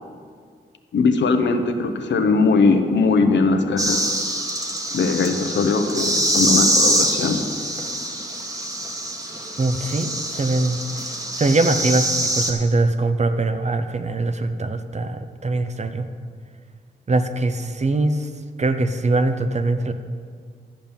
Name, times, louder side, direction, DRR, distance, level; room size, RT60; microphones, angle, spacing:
voice 1, 0.9-4.1 4.9-7.4, left 4 dB, 85° left, 6 dB, 1.0 m, -20 dB
sound 1, 3.8-12.5, right 1 dB, 20° right, 1.5 m, -24 dB
voice 2, 9.6-10.8 11.4-16.1 17.1-18.3 18.6-19.9, right 2 dB, 40° right, 9 dB, 0.8 m, -22 dB
13.0 x 5.3 x 8.9 m, 2.1 s
cardioid pair, 80°, 18 cm